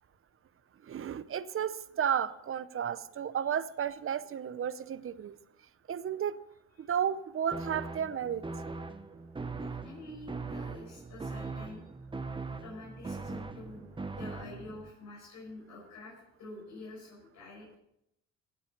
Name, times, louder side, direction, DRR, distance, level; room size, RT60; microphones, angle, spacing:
voice 1, 0.9-5.4 5.9-6.4 6.8-8.4, right 8 dB, 45° right, 15 dB, 0.8 m, -33 dB
sound 1, 7.5-14.9, right 3 dB, 15° right, 0.9 m, -40 dB
voice 2, 9.5-11.8 12.6-16.1 16.4-17.8, left 2 dB, 75° left, -4 dB, 5.5 m, -47 dB
16.5 x 8.3 x 5.3 m, 0.81 s
cardioid pair, 90°, 30 cm